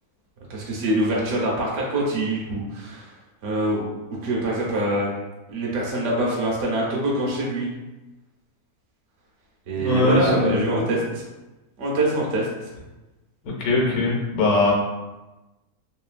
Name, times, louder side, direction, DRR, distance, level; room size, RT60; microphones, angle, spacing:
voice 1, 0.5-3.1 3.4-3.9 4.2-5.1 5.5-7.7 9.7-11.2 11.8-12.5, right 1 dB, 60° right, -3 dB, 0.9 m, -24 dB
voice 2, 9.7-10.8 13.4-14.7, left 2 dB, 70° left, -3 dB, 1.2 m, -21 dB
3.0 x 2.7 x 2.4 m, 1.1 s
omnidirectional pair, 1.6 m